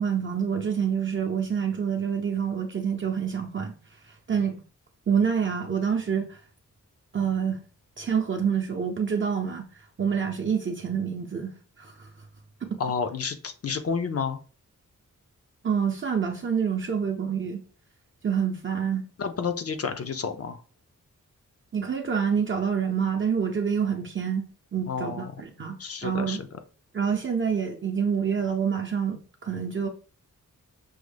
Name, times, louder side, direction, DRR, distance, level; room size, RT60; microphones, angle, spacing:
voice 1, 0.0-3.8 4.1-4.6 5.1-6.4 7.1-7.6 8.0-9.7 10.0-12.1 12.6-12.8 15.6-17.6 18.2-19.1 21.7-26.4 26.9-29.9, right 7 dB, 40° right, 0.5 m, -27 dB
voice 2, 12.8-14.4 19.2-20.6 24.9-25.3 25.8-26.5, left 5 dB, 50° left, 0.5 m, -30 dB
6.1 x 2.1 x 3.3 m
wide cardioid pair, 165°, 31 cm